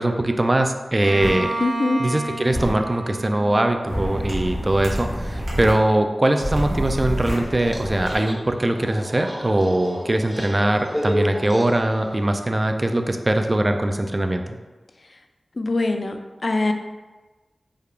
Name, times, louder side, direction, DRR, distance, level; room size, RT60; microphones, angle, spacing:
voice 1, 0.0-1.5 2.0-14.6, right 1 dB, 35° right, 6 dB, 0.3 m, -21 dB
Bowed string instrument, 1.0-4.7, right 2 dB, 70° right, 1.2 m, -32 dB
sound 1, 1.2-1.3 2.5-2.7 3.9-5.7 6.4-8.1, equal, 85° right, 0.9 m, -27 dB
voice 2, 1.6-2.0 15.6-16.2 16.4-16.7, left 2 dB, 55° left, 6 dB, 0.3 m, -22 dB
sound 2, 7.3-12.3, equal, ahead, 0.6 m, -31 dB
3.5 x 2.4 x 3.3 m, 1.2 s
wide cardioid pair, 55°, 0 cm